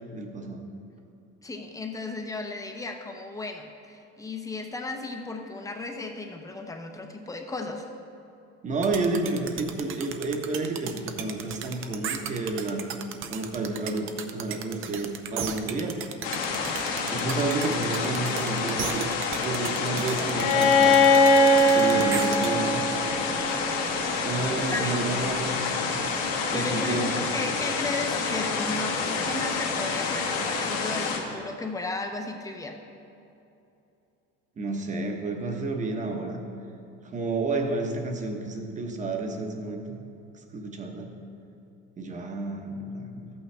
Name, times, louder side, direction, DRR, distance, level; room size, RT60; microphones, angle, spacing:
voice 1, 0.1-0.6 8.6-12.8 13.3-16.0 17.1-19.1 19.4-21.0 21.7-22.9 24.2-25.7 26.5-27.1 34.6-36.4 37.1-40.0 40.5-41.1 42.0-43.3, right 3 dB, 25° right, 3 dB, 1.0 m, -30 dB
voice 2, 1.4-7.8 24.5-25.0 26.5-32.8, left 3 dB, 10° left, 3 dB, 0.7 m, -34 dB
sound 1, 8.8-22.5, right 8 dB, 45° right, 0.6 m, -35 dB
sound 2, 16.2-31.2, left 4 dB, 60° left, 1.4 m, -29 dB
Bowed string instrument, 20.3-24.1, left 2 dB, 90° left, 1.2 m, -21 dB
13.0 x 8.7 x 3.3 m, 2.8 s
cardioid pair, 145°, 29 cm